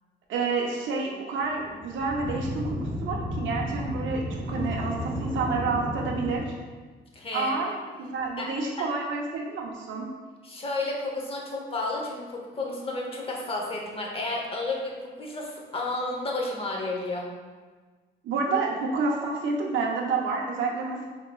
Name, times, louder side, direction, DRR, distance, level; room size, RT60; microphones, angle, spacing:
voice 1, 0.3-6.5 7.3-10.1 18.2-21.1, right 4 dB, 75° right, -1 dB, 0.5 m, -29 dB
Cave Drone, 1.4-6.4, equal, ahead, 0.6 m, -33 dB
voice 2, 7.1-7.7 8.4-8.5 10.4-17.3, left 2 dB, 30° left, -1 dB, 0.8 m, -32 dB
4.6 x 2.9 x 2.3 m, 1.4 s
cardioid pair, 90°, 20 cm